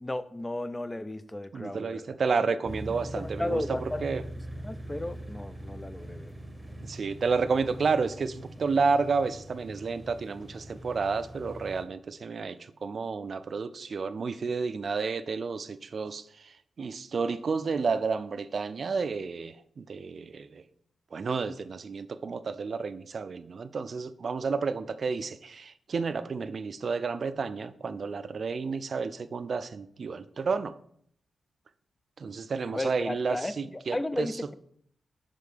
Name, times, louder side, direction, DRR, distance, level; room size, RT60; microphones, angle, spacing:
voice 1, 0.0-2.1 3.1-6.3 32.7-34.6, left 1 dB, 15° left, 0.3 m, -34 dB
voice 2, 1.5-3.6 4.0-4.2 6.8-12.6 12.8-16.2 16.8-20.6 21.1-30.7 32.2-34.3, right 4 dB, 50° right, 0.4 m, -31 dB
sound 1, 2.6-11.8, right 1 dB, 5° right, 1.0 m, -42 dB
6.6 x 3.7 x 5.3 m
wide cardioid pair, 120°, 0 cm